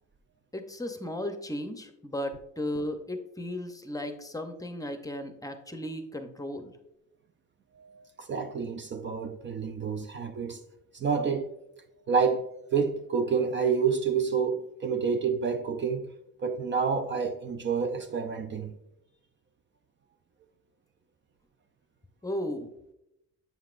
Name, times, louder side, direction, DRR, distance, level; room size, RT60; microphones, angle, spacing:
voice 1, 0.5-6.7 22.2-22.9, left 1 dB, 10° left, 0.7 m, -35 dB
voice 2, 7.8-10.6 10.9-11.5 12.1-16.1 16.4-18.7, right 5 dB, 40° right, 0.4 m, -29 dB
7.4 x 5.7 x 2.5 m
cardioid pair, 90°, 30 cm